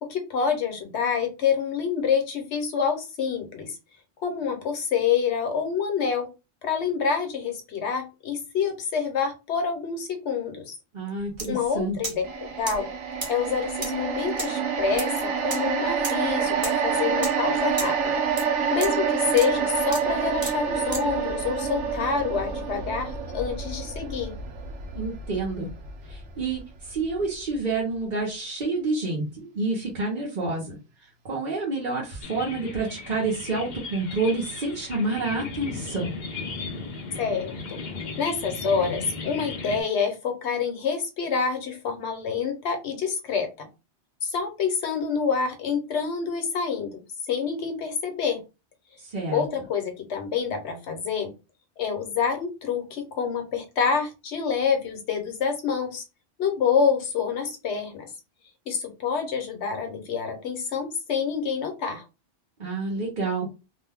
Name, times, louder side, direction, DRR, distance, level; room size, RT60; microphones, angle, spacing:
voice 1, 0.0-3.8 4.2-6.3 6.6-10.7 11.5-12.9 13.3-18.2 18.7-24.3 37.2-37.8 38.2-43.7 44.2-47.0 47.3-48.4 49.3-51.3 51.8-56.0 56.4-58.1 58.7-62.0, left 6 dB, 75° left, 5 dB, 1.1 m, -27 dB
voice 2, 10.9-12.0 24.9-25.7 26.0-36.1 49.0-49.4 62.6-63.5, right 3 dB, 45° right, -4 dB, 0.9 m, -29 dB
sound 1, 11.3-11.5 11.7-12.3 12.7-21.2, right 2 dB, 25° right, 0.5 m, -34 dB
sound 2, 12.2-26.6 26.9-27.1, right 6 dB, 85° right, 1.0 m, -28 dB
sound 3, 32.2-39.8, left 4 dB, 50° left, 0.6 m, -36 dB
2.6 x 2.2 x 3.4 m, 0.28 s
omnidirectional pair, 1.2 m